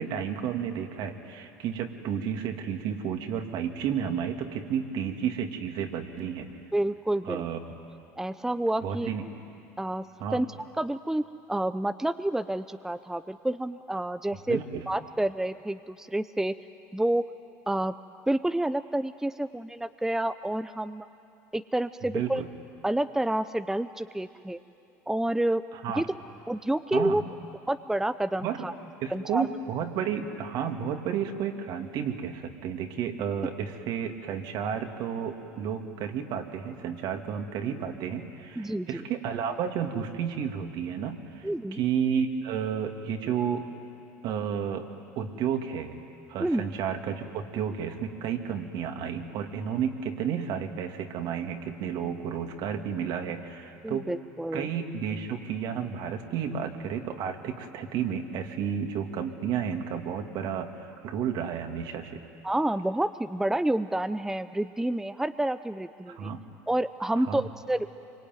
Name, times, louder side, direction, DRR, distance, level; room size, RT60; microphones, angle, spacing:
voice 1, 0.0-6.5 7.2-7.6 8.8-9.2 10.2-10.4 14.5-14.8 22.1-22.5 25.8-26.1 26.9-27.2 28.4-28.7 29.0-43.6 44.2-44.8 45.1-45.9 46.3-54.1 54.5-62.2 66.1-66.4 67.1-67.5, right 8 dB, 60° right, 4 dB, 2.6 m, -32 dB
voice 2, 6.7-7.4 8.2-9.1 9.8-10.1 10.3-10.5 10.8-14.6 14.9-16.5 16.9-17.2 17.7-17.9 18.3-21.1 21.5-22.4 22.8-24.6 25.1-25.6 26.0-26.1 26.5-27.2 27.7-28.7 29.1-29.5 38.6-39.0 41.4-41.8 46.4-46.6 53.8-54.7 62.4-66.3 66.7-67.9, right 1 dB, 5° right, 11 dB, 0.7 m, -29 dB
26.5 x 24.0 x 9.3 m, 2.7 s
hypercardioid pair, 75°, 9 cm